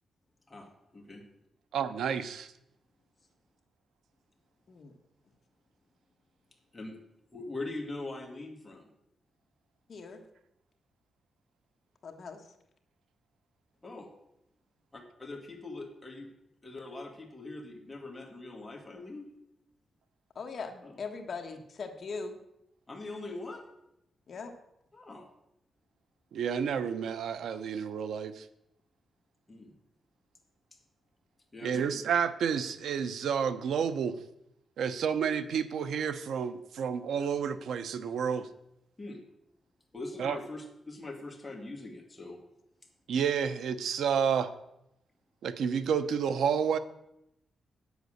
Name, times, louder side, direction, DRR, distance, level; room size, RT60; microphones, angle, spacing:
voice 1, 0.5-1.2 6.7-7.0 7.3-8.9 13.8-14.1 14.9-16.3 16.6-19.2 20.8-21.0 22.9-23.7 24.9-25.3 29.5-29.7 31.5-32.0 39.0-39.2 39.9-42.4, left 2 dB, 15° left, 0 dB, 1.8 m, -42 dB
voice 2, 1.7-2.5 26.3-28.5 31.6-34.2 34.8-38.5 40.2-40.4 43.1-44.5 45.4-46.8, right 7 dB, 85° right, 12 dB, 0.7 m, -30 dB
voice 3, 9.9-10.2 12.0-12.5 20.3-22.4 24.3-24.5, left 4 dB, 45° left, 4 dB, 1.3 m, -40 dB
9.3 x 8.1 x 6.4 m, 0.83 s
wide cardioid pair, 165°, 0 cm